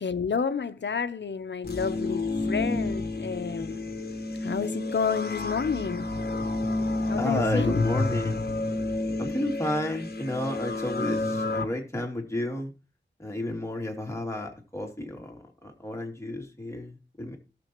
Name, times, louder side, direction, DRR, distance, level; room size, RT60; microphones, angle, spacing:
voice 1, 0.0-3.8 4.4-6.1 7.1-7.8, left 6 dB, 70° left, 1.0 m, -30 dB
sound 1, 1.6-11.7, left 2 dB, 55° left, 1.3 m, -30 dB
voice 2, 7.0-8.5 9.2-12.7 13.2-17.4, left 1 dB, 15° left, 2.9 m, -32 dB
18.0 x 7.0 x 3.1 m
wide cardioid pair, 80°, 19 cm